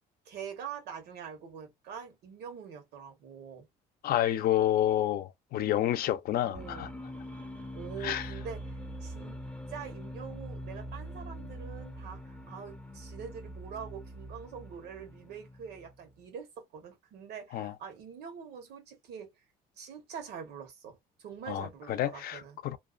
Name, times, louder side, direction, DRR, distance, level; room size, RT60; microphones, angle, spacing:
voice 1, 0.2-3.7 6.4-6.9 7.7-9.4 9.7-19.4 19.8-22.6, right 7 dB, 75° right, 1.2 m, -44 dB
voice 2, 4.0-6.9 8.0-8.3 17.5-17.7 21.5-22.8, left 12 dB, 65° left, 0.5 m, -29 dB
sound 1, 6.5-16.1, equal, 10° left, 0.6 m, -43 dB
2.6 x 2.1 x 2.4 m
cardioid pair, 110°, 17 cm